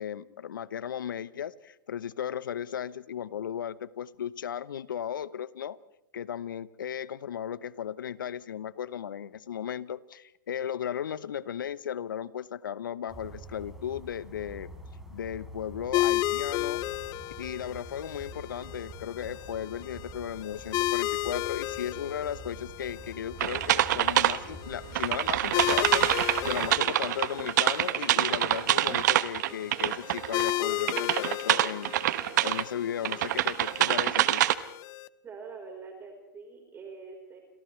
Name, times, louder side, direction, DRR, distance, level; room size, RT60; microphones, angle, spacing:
voice 1, 0.0-5.8 6.1-14.7 15.1-16.8 17.4-34.4, left 9 dB, 75° left, 17 dB, 0.9 m, -36 dB
sound 1, 13.1-26.8, right 1 dB, 5° right, 4.2 m, -46 dB
sound 2, 15.9-35.1, left 16 dB, 35° left, 0.6 m, -34 dB
sound 3, 23.4-24.4 24.9-30.6 30.8-32.6 33.0-34.5, right 14 dB, 60° right, 1.1 m, -25 dB
voice 2, 35.2-37.4, right 4 dB, 20° right, 2 dB, 4.4 m, -44 dB
30.0 x 27.5 x 3.3 m, 0.85 s
hypercardioid pair, 115°, 11 cm